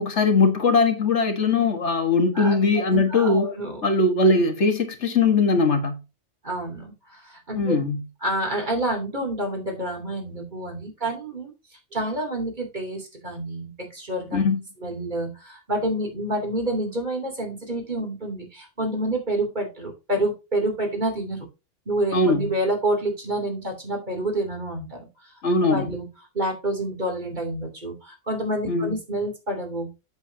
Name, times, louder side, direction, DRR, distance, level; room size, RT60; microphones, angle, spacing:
voice 1, 0.0-3.5 3.8-6.0 7.5-8.1 14.3-14.6 22.1-22.6 25.4-25.9 28.7-29.0, left 3 dB, 70° left, 1.8 m, -20 dB
voice 2, 2.9-3.8 6.4-7.8 8.2-11.5 11.9-14.4 14.8-21.5 21.9-25.1 25.6-26.1 26.3-29.9, right 1 dB, 40° right, 3.1 m, -28 dB
8.1 x 8.0 x 2.7 m
omnidirectional pair, 1.2 m